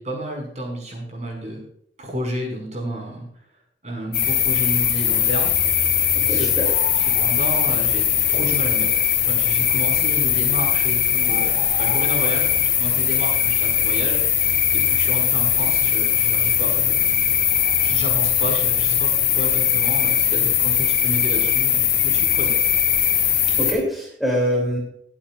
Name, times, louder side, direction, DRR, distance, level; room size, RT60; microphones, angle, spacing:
voice 1, 0.0-1.6 2.0-3.3 3.8-5.5 6.3-6.5 7.0-14.2 14.7-17.3 17.8-22.5, equal, 40° right, 0 dB, 5.0 m, -31 dB
sound 1, 4.1-23.7, left 9 dB, 55° left, 3.0 m, -20 dB
voice 2, 6.3-6.7 23.6-24.8, equal, ahead, -2 dB, 2.9 m, -23 dB
21.5 x 8.7 x 2.4 m, 0.69 s
head